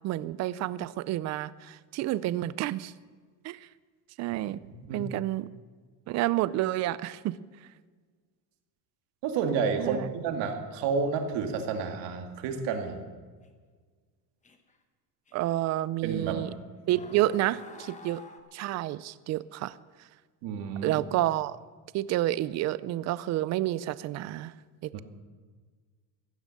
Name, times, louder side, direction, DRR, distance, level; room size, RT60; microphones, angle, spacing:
voice 1, 0.0-2.9 3.4-3.6 4.2-4.6 4.9-5.5 6.1-7.4 9.8-10.1 15.3-16.5 16.9-18.2 18.5-19.8 20.8-21.6 21.9-24.5 24.8-25.0, right 15 dB, 40° right, 18 dB, 0.4 m, -29 dB
voice 2, 4.6-5.1 9.2-13.0 16.0-16.5 20.4-21.0 24.9-25.0, right 5 dB, 60° right, 5 dB, 2.1 m, -30 dB
sound 1, 13.4-13.5 14.4-14.8 15.3-15.4 16.4-16.5 16.9-18.4, left 4 dB, 15° left, 1.1 m, -48 dB
16.0 x 11.5 x 6.5 m, 1.5 s
cardioid pair, 150°, 47 cm